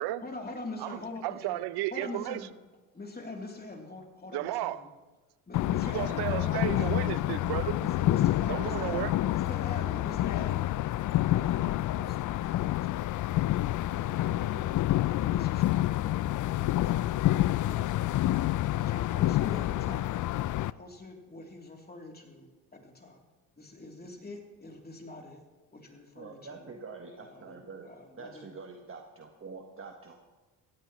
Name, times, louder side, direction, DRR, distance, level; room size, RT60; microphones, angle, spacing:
voice 1, 0.2-1.6 1.9-2.5 2.9-4.9 5.5-6.8 7.8-10.7 11.2-12.8 13.3-14.6 15.0-16.2 17.6-17.9 18.8-20.1 20.6-23.2 23.5-25.4 25.7-26.7 27.2-27.6 27.8-28.5, left 2 dB, 25° left, 1 dB, 3.0 m, -43 dB
voice 2, 0.8-2.4 4.3-4.9 5.8-7.8 8.5-9.1, right 15 dB, 75° right, 16 dB, 0.7 m, -33 dB
sound 1, 5.5-20.7, left 15 dB, 50° left, 0.4 m, -28 dB
voice 3, 26.2-27.9 28.2-30.2, right 4 dB, 30° right, 3 dB, 1.4 m, -45 dB
16.5 x 16.0 x 3.1 m, 1.2 s
supercardioid pair, 70°, 40 cm